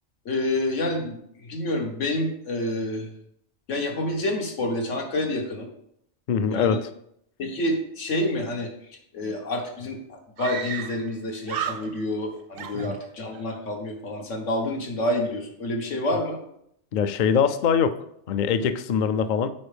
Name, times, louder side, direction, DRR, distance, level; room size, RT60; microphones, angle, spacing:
voice 1, 0.2-1.2 1.5-3.1 3.7-5.7 6.5-6.8 7.4-8.7 9.1-16.4, left 1 dB, 90° left, 2 dB, 1.6 m, -28 dB
voice 2, 6.3-6.8 12.7-13.0 16.9-17.9 18.3-19.5, left 7 dB, 60° left, 11 dB, 0.5 m, -22 dB
Screaming, 9.3-9.4 9.6-9.7 10.4-11.2 11.4-12.2 12.6-13.5, right 9 dB, 60° right, 0.6 m, -34 dB
9.3 x 4.4 x 3.4 m, 0.72 s
omnidirectional pair, 1.2 m